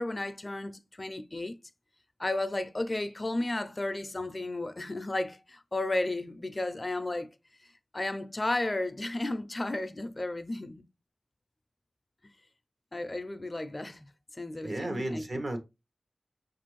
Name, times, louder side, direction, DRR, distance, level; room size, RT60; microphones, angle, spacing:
voice 1, 0.0-1.5 2.2-7.3 7.9-10.8 12.9-14.0 14.4-15.4, left 2 dB, 35° left, 0.4 m, -33 dB
voice 2, 14.6-15.6, right 1 dB, 70° right, 0.8 m, -33 dB
5.4 x 2.5 x 3.0 m
wide cardioid pair, 85°, 0 cm